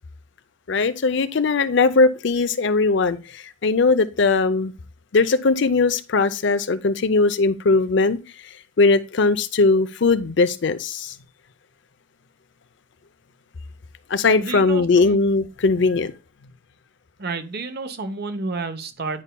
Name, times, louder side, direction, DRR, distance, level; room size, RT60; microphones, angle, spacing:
voice 1, 0.7-4.7 5.1-8.2 8.8-11.2 14.1-16.1, left 3 dB, 60° left, 0.5 m, -19 dB
voice 2, 14.4-15.2 17.2-19.2, right 3 dB, 50° right, 0.8 m, -30 dB
9.7 x 5.5 x 2.2 m
head